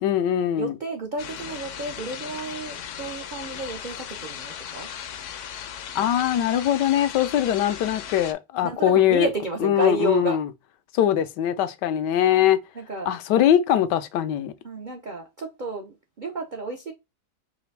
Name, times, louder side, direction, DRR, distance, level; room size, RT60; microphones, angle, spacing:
voice 1, 0.0-0.8 5.9-9.3 9.6-10.5 10.9-12.6 13.1-14.5, left 10 dB, 85° left, 1.2 m, -21 dB
voice 2, 0.5-4.9 8.6-10.4 12.7-13.1 14.6-16.9, right 3 dB, 75° right, 0.4 m, -31 dB
sound 1, 1.2-8.3, left 9 dB, 70° left, 0.7 m, -37 dB
4.9 x 2.5 x 3.2 m
omnidirectional pair, 1.8 m